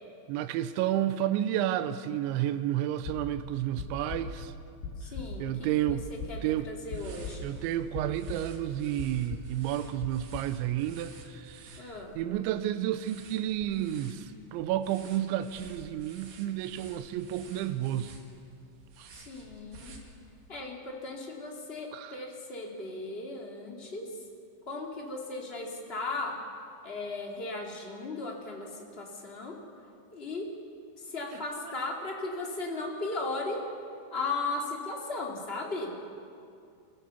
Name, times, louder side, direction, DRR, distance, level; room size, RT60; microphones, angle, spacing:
voice 1, 0.3-4.5 5.4-6.1 6.4-6.7 7.4-18.1 19.0-19.1 21.9-22.2, right 12 dB, 90° right, 11 dB, 3.1 m, -31 dB
sound 1, 3.1-7.7 7.9-8.7 9.0-9.6 10.0-10.6, left 4 dB, 80° left, 4.8 m, -39 dB
voice 2, 5.0-5.5 5.9-7.5 11.8-12.2 19.1-19.9 20.5-24.1 24.7-26.4 26.8-29.6 30.1-30.4 31.0-33.6 34.1-35.9, left 3 dB, 30° left, 0 dB, 1.0 m, -36 dB
sound 2, 6.8-20.5, right 3 dB, 70° right, 4.3 m, -52 dB
27.0 x 16.0 x 7.0 m, 2.4 s
omnidirectional pair, 5.2 m